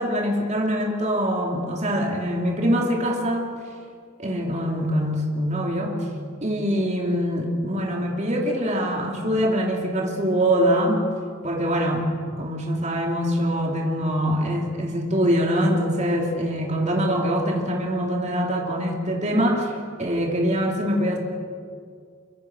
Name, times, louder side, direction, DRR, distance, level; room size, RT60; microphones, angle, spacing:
voice 1, 0.0-3.5 4.2-6.1 6.4-11.0 11.4-12.1 12.4-21.2, equal, 35° right, 0 dB, 3.0 m, -24 dB
24.5 x 24.0 x 6.3 m, 2.2 s
head